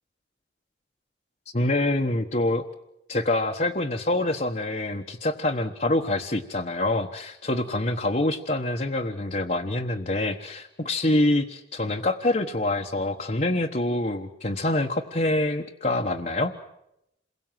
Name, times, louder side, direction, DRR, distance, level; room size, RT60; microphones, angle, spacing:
voice 1, 1.5-2.6 3.1-16.5, left 2 dB, 40° left, 1 dB, 1.2 m, -26 dB
28.5 x 22.5 x 7.6 m, 0.84 s
head